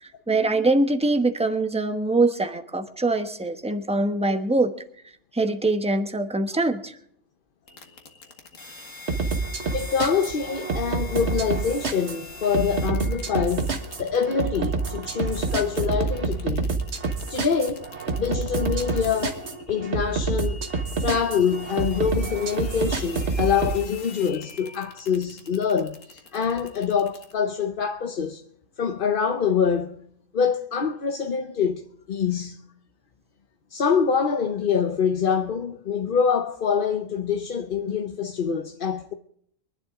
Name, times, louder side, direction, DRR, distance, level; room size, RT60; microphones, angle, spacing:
voice 1, 0.0-4.7 5.3-6.9, right 2 dB, 5° right, 1.0 m, -23 dB
sound 1, 7.7-27.3, left 3 dB, 75° left, 2.0 m, -44 dB
sound 2, 9.1-23.8, right 4 dB, 60° right, 1.7 m, -28 dB
voice 2, 9.7-16.7 17.3-17.9 18.2-20.6 21.0-28.4 28.8-30.0 30.3-32.6 33.7-39.1, left 6 dB, 45° left, 0.9 m, -25 dB
24.0 x 11.5 x 3.7 m
omnidirectional pair, 1.4 m